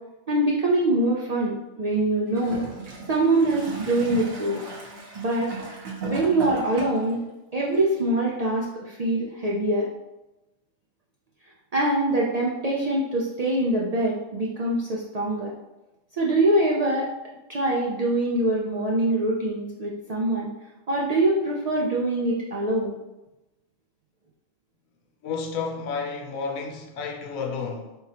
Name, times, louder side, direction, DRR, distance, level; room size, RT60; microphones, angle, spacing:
voice 1, 0.3-2.6 3.1-4.6 5.1-5.5 6.0-7.2 7.5-9.9 11.7-15.5 16.2-17.1 17.5-20.5 20.9-23.0, right 1 dB, 65° right, -3 dB, 0.4 m, -24 dB
Gurgling / Toilet flush, 2.3-7.2 8.0-8.1, right 3 dB, 80° right, 1.4 m, -36 dB
voice 2, 25.2-28.0, left 5 dB, 80° left, 2 dB, 1.1 m, -31 dB
4.5 x 3.6 x 2.8 m, 1.0 s
omnidirectional pair, 1.4 m